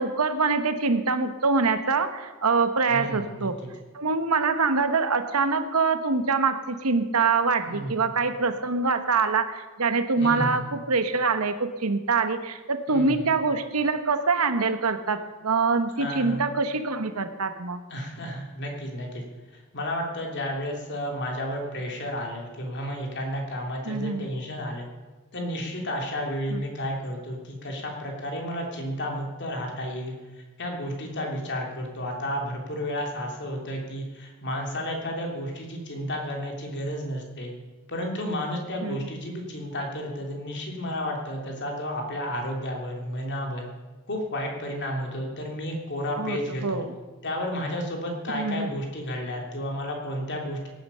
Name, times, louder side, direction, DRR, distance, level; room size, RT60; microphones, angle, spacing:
voice 1, 0.0-3.6 3.9-17.8 23.9-24.3 26.5-26.6 38.8-39.0 46.2-46.9 48.3-48.7, right 4 dB, 80° right, 9 dB, 1.1 m, -25 dB
voice 2, 2.9-3.5 7.7-8.1 10.2-10.6 12.9-13.3 15.9-16.5 17.9-19.2 19.5-24.9 25.3-37.5 37.9-43.6 44.1-46.9 47.2-50.7, equal, 50° left, 1 dB, 3.0 m, -32 dB
17.5 x 10.5 x 5.6 m, 1.2 s
head